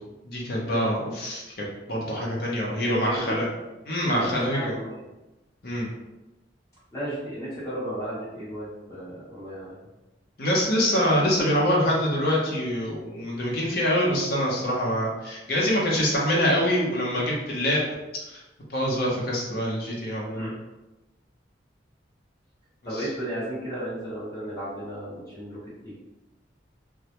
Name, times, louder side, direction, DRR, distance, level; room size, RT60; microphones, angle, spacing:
voice 1, 0.2-1.4 1.9-3.5 3.9-4.7 5.6-5.9 10.4-17.8 18.3-18.4 18.7-20.5 23.0-23.1, equal, 55° left, -3 dB, 0.6 m, -25 dB
voice 2, 2.7-3.4 4.1-5.0 6.9-9.8 20.3-20.5 22.8-25.9, equal, 20° left, -10 dB, 1.0 m, -34 dB
2.2 x 2.0 x 2.8 m, 1.0 s
head